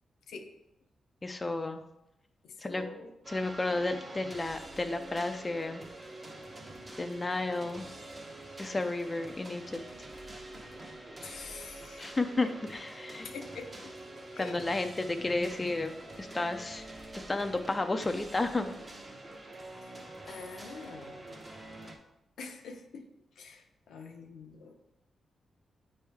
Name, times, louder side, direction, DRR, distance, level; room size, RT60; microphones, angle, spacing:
voice 1, 1.2-1.8 2.6-2.8 3.3-5.8 7.0-7.9 8.6-9.8 12.0-13.3 14.4-16.9 17.3-18.7, left 2 dB, 25° left, 6 dB, 0.4 m, -32 dB
voice 2, 2.4-3.1 11.2-12.1 13.2-13.9 14.3-14.6 19.8-20.0 20.3-21.4 22.4-23.1 23.4-24.8, left 4 dB, 85° left, 3 dB, 0.7 m, -45 dB
sound 1, 3.2-22.0, right 1 dB, 30° right, 1.0 m, -46 dB
9.1 x 3.1 x 3.5 m, 0.86 s
cardioid pair, 90°, 0 cm